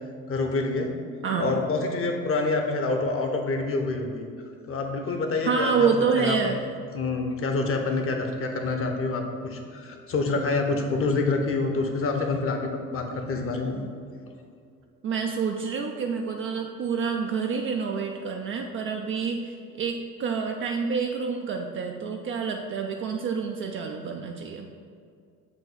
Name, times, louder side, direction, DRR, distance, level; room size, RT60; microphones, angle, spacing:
voice 1, 0.3-0.9 1.4-4.3 4.7-5.9 6.1-6.7 6.9-13.8, left 3 dB, 30° left, 4 dB, 0.9 m, -27 dB
voice 2, 1.2-1.6 5.4-6.6 15.0-24.7, right 5 dB, 30° right, 3 dB, 0.4 m, -28 dB
7.2 x 3.0 x 5.4 m, 2.3 s
figure-of-eight pair, 55°, 44 cm